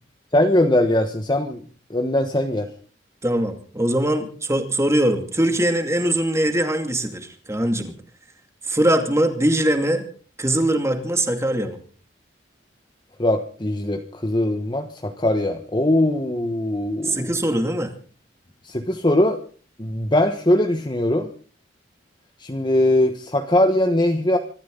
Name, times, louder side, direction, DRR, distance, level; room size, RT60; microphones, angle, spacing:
voice 1, 0.3-1.6 1.9-2.7 13.2-17.3 18.6-19.4 19.8-21.3 22.4-24.4, left 1 dB, 25° left, 5 dB, 1.2 m, -21 dB
voice 2, 3.2-7.9 8.6-10.0 10.4-11.8 17.0-17.9, right 1 dB, 15° right, 6 dB, 2.4 m, -21 dB
25.0 x 13.5 x 3.9 m, 0.41 s
head